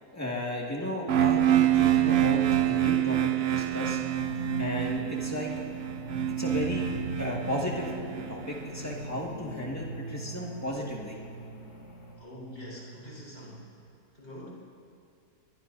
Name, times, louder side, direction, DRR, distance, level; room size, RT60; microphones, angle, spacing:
voice 1, 0.1-4.0 4.6-5.5 6.4-6.9 7.2-11.2, left 1 dB, 10° left, -3 dB, 1.9 m, -34 dB
sound 1, 1.1-8.9, right 12 dB, 65° right, 0.6 m, -27 dB
sound 2, 4.2-12.1, equal, 70° left, 3.4 m, -40 dB
voice 2, 12.2-13.7 14.2-14.5, equal, 40° left, -7 dB, 4.8 m, -44 dB
22.5 x 22.0 x 2.7 m, 2.4 s
omnidirectional pair, 1.8 m